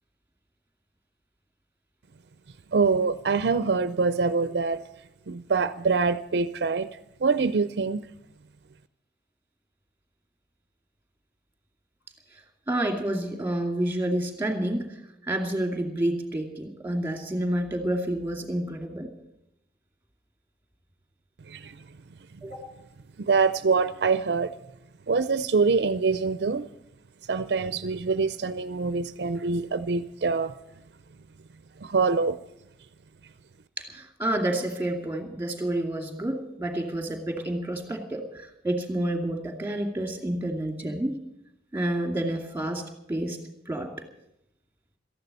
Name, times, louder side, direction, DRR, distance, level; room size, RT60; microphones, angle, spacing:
voice 1, 2.7-4.8 5.3-8.1 21.5-21.8 23.2-24.5 25.1-26.7 27.3-30.5 31.8-32.4, right 4 dB, 60° right, 14 dB, 0.5 m, -25 dB
voice 2, 12.7-14.9 15.2-19.1 22.4-22.7 33.8-41.2 41.7-43.4 43.7-43.9, right 1 dB, 10° right, 4 dB, 2.4 m, -29 dB
14.0 x 11.0 x 8.2 m, 0.83 s
head